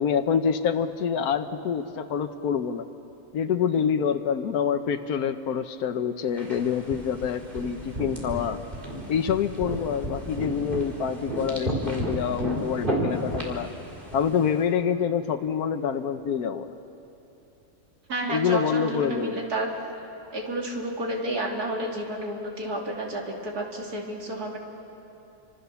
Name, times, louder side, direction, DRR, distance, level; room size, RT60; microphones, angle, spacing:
voice 1, 0.0-2.8 3.3-8.6 9.1-13.7 14.1-16.7 18.3-19.4, left 7 dB, 80° left, 7 dB, 1.4 m, -26 dB
sound 1, 6.4-14.6, right 1 dB, 35° right, 4.0 m, -33 dB
voice 2, 18.1-19.7 20.3-24.6, right 1 dB, 90° right, -1 dB, 3.5 m, -30 dB
29.5 x 26.0 x 7.0 m, 2.9 s
omnidirectional pair, 1.6 m